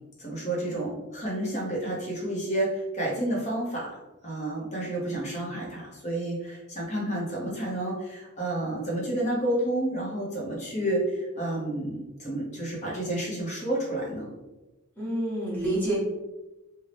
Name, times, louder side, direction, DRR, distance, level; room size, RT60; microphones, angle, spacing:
voice 1, 0.2-4.0 4.2-14.3, right 1 dB, 30° left, -4 dB, 0.9 m, -30 dB
voice 2, 15.0-16.0, right 1 dB, 10° left, -9 dB, 1.2 m, -28 dB
2.6 x 2.3 x 3.3 m, 1.0 s
head